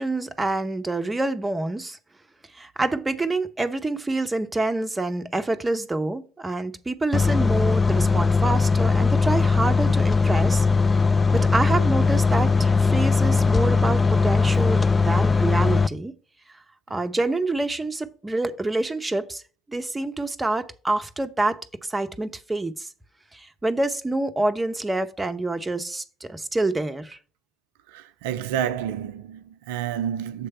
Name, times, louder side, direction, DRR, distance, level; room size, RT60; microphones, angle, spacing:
voice 1, 0.0-2.0 2.5-11.0 11.3-16.1 16.9-19.4 19.7-22.9 23.3-27.2, right 2 dB, 15° right, 0.7 m, -27 dB
sound 1, 7.1-15.9, left 4 dB, 25° left, 0.3 m, -20 dB
voice 2, 27.9-30.5, right 9 dB, 70° right, 0.4 m, -29 dB
7.4 x 3.3 x 5.6 m
figure-of-eight pair, 60°, 0 cm